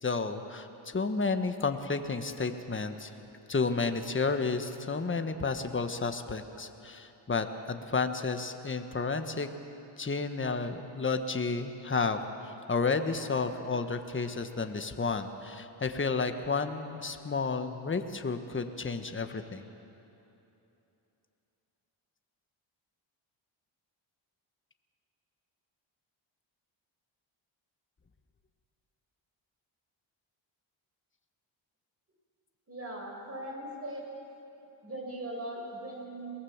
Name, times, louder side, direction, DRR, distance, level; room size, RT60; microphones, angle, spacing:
voice 1, 0.0-3.1 3.5-9.5 10.0-19.7, left 4 dB, 25° left, 7 dB, 1.4 m, -31 dB
voice 2, 32.7-34.0 34.8-36.3, right 1 dB, 30° right, -1 dB, 6.4 m, -39 dB
23.0 x 18.5 x 7.3 m, 2.9 s
cardioid pair, 75°, 49 cm